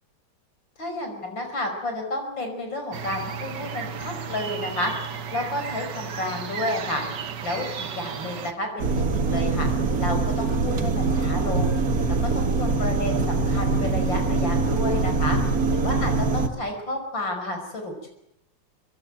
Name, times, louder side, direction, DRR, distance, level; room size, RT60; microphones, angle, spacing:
voice 1, 0.8-7.0 7.4-9.7 10.0-11.7 12.3-15.4 15.7-18.1, left 1 dB, 85° left, 4 dB, 6.1 m, -31 dB
sound 1, 2.9-8.5, right 7 dB, 70° right, 2.0 m, -34 dB
sound 2, 8.8-16.5, right 3 dB, 55° right, 2.2 m, -23 dB
24.5 x 21.0 x 9.1 m, 0.83 s
omnidirectional pair, 2.0 m